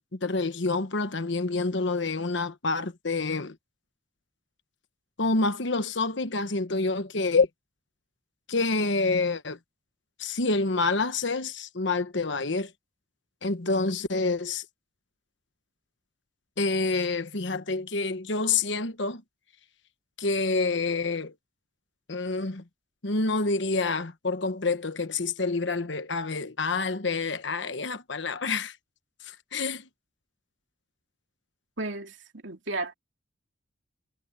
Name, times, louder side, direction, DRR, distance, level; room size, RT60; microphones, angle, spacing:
voice 1, 0.0-3.6 5.2-7.5 8.5-9.6 10.2-12.7 13.4-14.6 16.6-19.2 20.2-21.3 22.1-22.6 23.0-28.8 29.2-29.9, left 3 dB, 60° left, 1.2 m, -27 dB
voice 2, 31.8-32.2 32.4-32.9, right 2 dB, 70° right, 2.9 m, -33 dB
head